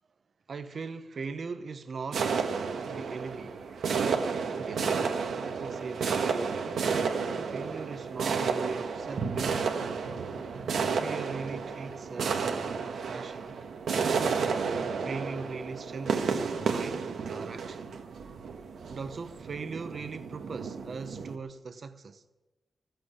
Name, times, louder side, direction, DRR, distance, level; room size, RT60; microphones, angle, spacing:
voice 1, 0.5-2.5 2.9-3.8 4.6-6.8 7.3-9.7 11.0-13.7 14.4-14.7 15.0-17.9 18.9-22.2, right 4 dB, 45° right, 0.8 m, -40 dB
sound 1, 2.1-21.4, right 5 dB, 80° right, 1.3 m, -31 dB
15.5 x 7.7 x 10.0 m
wide cardioid pair, 175°, 0 cm